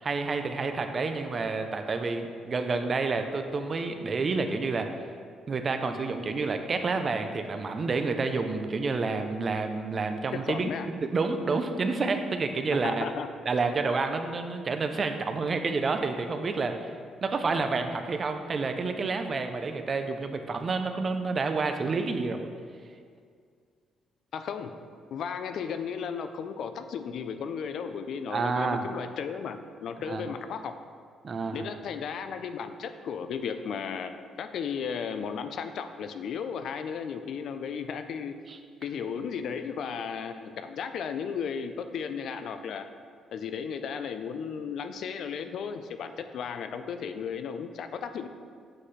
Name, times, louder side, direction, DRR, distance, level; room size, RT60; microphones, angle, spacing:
voice 1, 0.0-4.9 5.5-10.7 11.0-13.0 13.5-16.9 17.2-22.5 28.3-28.9 30.1-30.2 31.2-31.6 38.5-38.6, right 4 dB, 30° right, 7 dB, 0.4 m, -29 dB
voice 2, 10.3-10.9 12.8-13.3 24.3-24.9 25.1-30.8 31.5-38.4 38.8-42.9 43.3-48.3, left 6 dB, 60° left, 9 dB, 0.3 m, -35 dB
7.5 x 4.2 x 3.2 m, 2.1 s
cardioid pair, 155°, 0 cm